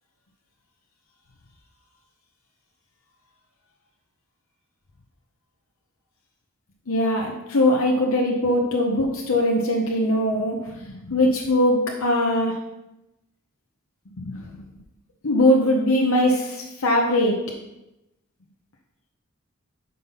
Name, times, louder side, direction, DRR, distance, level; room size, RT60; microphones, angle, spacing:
voice 1, 6.9-12.6 14.2-14.4 15.2-17.4, left 1 dB, 85° left, -1 dB, 0.9 m, -21 dB
5.4 x 5.3 x 5.7 m, 0.94 s
head